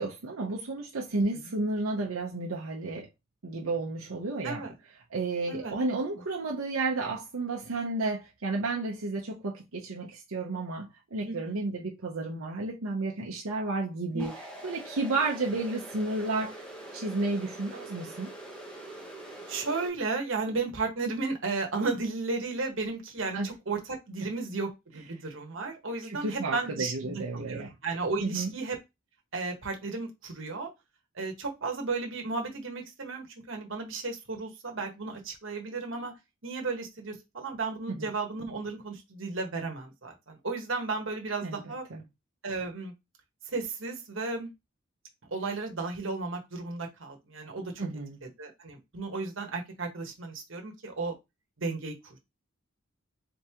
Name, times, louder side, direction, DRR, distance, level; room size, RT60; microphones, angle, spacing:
voice 1, 0.0-3.1 3.4-4.6 5.1-14.3 14.6-16.6 16.9-18.3 23.3-23.5 26.0-27.7 28.2-28.5 37.9-38.1 41.4-41.6 41.9-42.0 47.8-48.2, right 3 dB, 90° right, 0.8 m, -32 dB
voice 2, 4.4-4.7 5.5-5.7 11.3-11.5 14.1-14.2 19.5-28.8 29.3-30.7 31.1-36.1 36.4-41.8 42.4-42.9 43.4-44.5 45.3-47.8 48.2-51.1 51.6-52.2, right 3 dB, 65° right, 1.2 m, -34 dB
sound 1, 14.2-19.9, right 1 dB, 5° left, 0.9 m, -44 dB
3.8 x 3.5 x 2.9 m
head